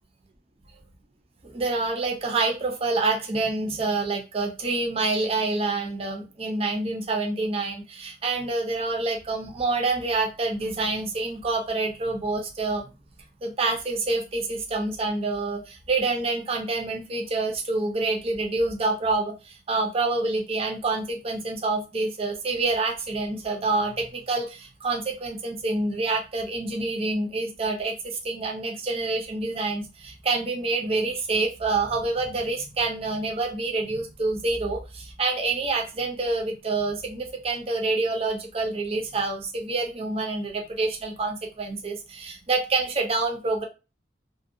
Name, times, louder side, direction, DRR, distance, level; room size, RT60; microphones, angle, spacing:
voice 1, 1.4-12.9 13.4-43.6, right 3 dB, 35° right, 2 dB, 0.5 m, -27 dB
2.5 x 2.1 x 2.5 m, 0.30 s
head